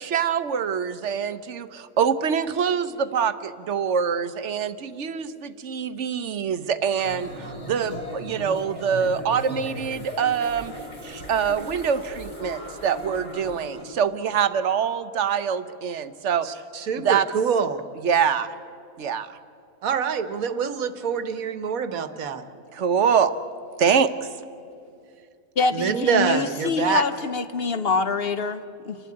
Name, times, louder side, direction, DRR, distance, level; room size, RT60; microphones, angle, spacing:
voice 1, 0.0-10.7 11.0-16.6 17.0-17.3 18.0-18.5 19.0-19.4 22.7-23.3 23.8-24.3, right 7 dB, 60° right, 13 dB, 1.1 m, -25 dB
sound 1, 7.0-13.9, equal, 30° left, 4.4 m, -37 dB
voice 2, 16.4-17.8 19.8-22.4 25.7-27.0, right 6 dB, 85° right, 11 dB, 1.5 m, -25 dB
voice 3, 25.6-29.0, left 4 dB, 50° left, 11 dB, 1.0 m, -25 dB
29.5 x 12.0 x 9.7 m, 2.5 s
omnidirectional pair, 1.4 m